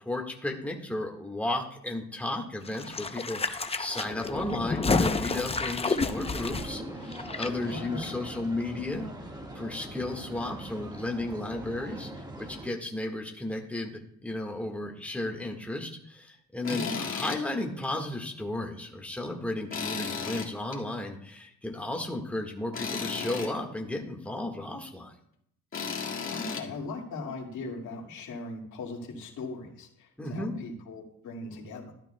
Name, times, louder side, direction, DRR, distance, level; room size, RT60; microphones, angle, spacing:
voice 1, 0.0-6.8 7.4-9.1 9.5-25.1 30.2-30.6, left 2 dB, 5° left, 1 dB, 1.7 m, -34 dB
sound 1, 2.6-7.5 7.8-7.9, left 4 dB, 20° left, 0.7 m, -30 dB
sound 2, 6.1-12.7, right 1 dB, 15° right, 1.7 m, -42 dB
voice 2, 7.5-8.3 16.7-17.1 26.3-31.9, left 3 dB, 75° left, 0 dB, 2.2 m, -39 dB
Tools, 16.6-17.4 17.8-17.9 19.7-20.8 22.7-23.5 25.7-26.6, left 5 dB, 45° left, 2.1 m, -34 dB
13.5 x 12.0 x 2.3 m, 0.71 s
cardioid pair, 90°, 30 cm